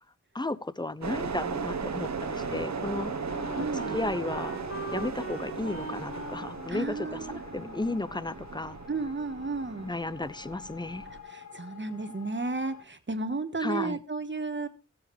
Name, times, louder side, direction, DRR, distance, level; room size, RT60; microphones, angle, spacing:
voice 1, 0.3-3.3 3.9-4.6 4.9-8.8 9.8-11.0 13.6-14.0, left 2 dB, 15° left, 17 dB, 0.7 m, -34 dB
sound 1, 1.0-11.2, right 5 dB, 60° right, 1.1 m, -37 dB
sound 2, 1.4-12.8, left 5 dB, 60° left, 1.7 m, -48 dB
Wind instrument woodwind instrument, 2.3-8.6, right 1 dB, 45° left, 3.9 m, -42 dB
voice 2, 3.5-4.0 6.7-7.4 8.9-9.9 11.1-14.7, right 3 dB, 35° right, 10 dB, 1.4 m, -33 dB
16.0 x 7.2 x 3.4 m, 0.30 s
cardioid pair, 45°, 31 cm